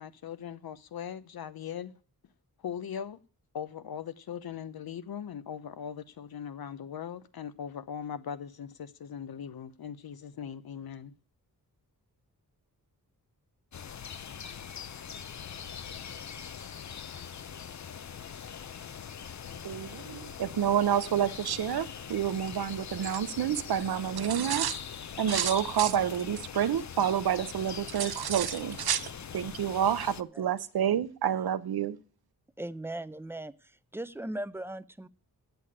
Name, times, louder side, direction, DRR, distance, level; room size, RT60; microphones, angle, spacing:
voice 1, 0.0-1.9 2.6-3.2 3.5-11.1, left 8 dB, 75° left, 0.9 m, -40 dB
sound 1, 13.7-30.2, left 7 dB, 50° left, 0.7 m, -42 dB
voice 2, 19.6-24.8 25.2-32.0, right 9 dB, 80° right, 0.8 m, -29 dB
voice 3, 32.6-35.1, right 1 dB, 5° right, 0.5 m, -38 dB
8.6 x 8.1 x 8.7 m
wide cardioid pair, 95°, 37 cm